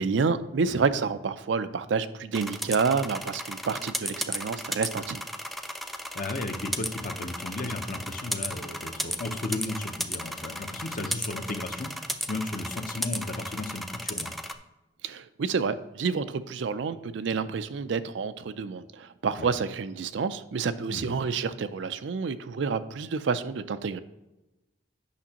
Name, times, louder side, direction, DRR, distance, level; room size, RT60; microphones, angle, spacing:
voice 1, 0.0-5.2 15.0-24.0, right 5 dB, 70° right, 12 dB, 0.4 m, -29 dB
sound 1, 2.3-14.5, equal, ahead, 0.3 m, -35 dB
voice 2, 5.9-14.3 19.4-19.5 20.9-21.1, left 2 dB, 50° left, 6 dB, 0.8 m, -35 dB
8.5 x 6.0 x 2.9 m, 1.0 s
head